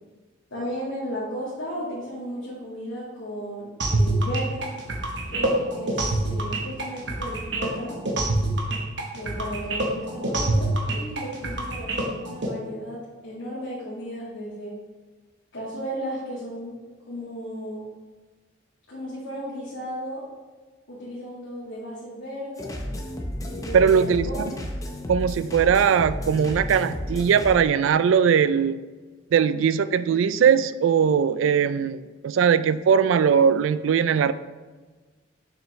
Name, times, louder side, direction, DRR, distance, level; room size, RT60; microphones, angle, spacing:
voice 1, 0.5-4.6 5.3-7.9 9.1-14.8 15.5-16.8 17.1-17.9 18.9-20.2 20.9-22.7 23.4-23.8 24.2-24.6, equal, 90° left, -10 dB, 2.3 m, -34 dB
sound 1, 3.8-12.5, right 2 dB, 60° right, 1.0 m, -26 dB
sound 2, 22.6-27.6, left 1 dB, 15° left, 0.6 m, -33 dB
voice 2, 23.7-24.5 25.1-28.8 29.3-34.3, right 7 dB, 80° right, 15 dB, 0.3 m, -20 dB
7.2 x 5.9 x 3.2 m, 1.4 s
head